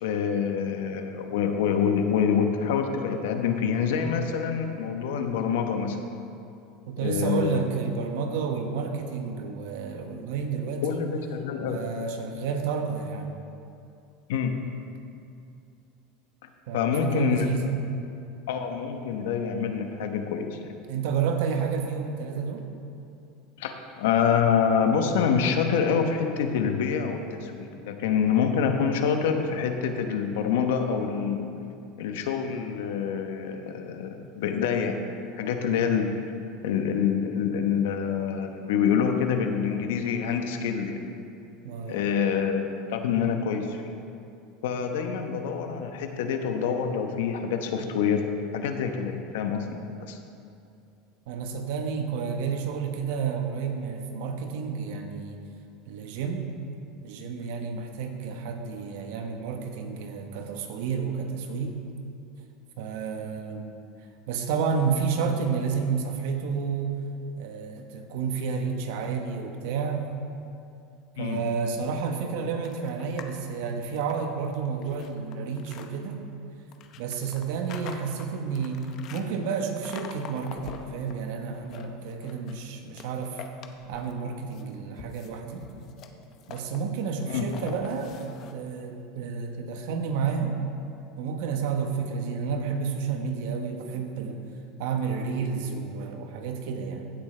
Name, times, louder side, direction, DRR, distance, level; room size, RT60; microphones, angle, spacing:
voice 1, 0.0-6.0 7.0-7.6 10.8-11.8 14.3-14.6 16.7-17.5 18.5-20.7 23.6-31.5 32.0-35.1 35.3-36.2 36.6-41.0 41.9-43.9 44.6-48.3 48.5-49.7 50.0-50.2 71.2-71.4 87.3-87.4, left 7 dB, 80° left, 5 dB, 1.0 m, -26 dB
voice 2, 6.9-11.0 11.6-13.3 16.7-17.7 20.9-22.7 41.6-42.0 51.3-55.4 55.9-56.5 57.0-61.8 62.8-63.7 64.3-67.1 67.4-70.0 71.2-76.2 77.0-83.4 83.9-85.7 86.5-90.6 91.2-94.4 94.8-97.1, right 6 dB, 75° right, 4 dB, 1.2 m, -30 dB
sound 1, 72.6-73.4 73.8-75.9 76.7-79.2 79.8-81.1 81.5-82.6 82.9-84.2 84.5-88.5, left 7 dB, 45° left, 0.8 m, -44 dB
16.0 x 8.5 x 3.4 m, 2.6 s
supercardioid pair, 130°, 0 cm